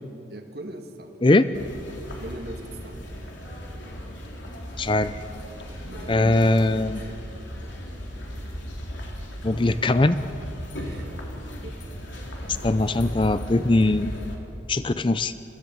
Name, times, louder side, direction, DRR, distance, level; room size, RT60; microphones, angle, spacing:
voice 1, 0.3-1.2 2.2-3.1 5.9-7.1 10.8-11.9 12.9-13.0, right 1 dB, 55° right, 4 dB, 1.9 m, -40 dB
sound 1, 1.5-14.4, equal, 85° left, 3.6 m, -36 dB
voice 2, 4.8-5.2 6.1-7.0 9.4-10.2 12.6-14.1 14.7-15.3, left 2 dB, 25° left, 13 dB, 0.5 m, -20 dB
29.0 x 15.5 x 7.7 m, 2.6 s
head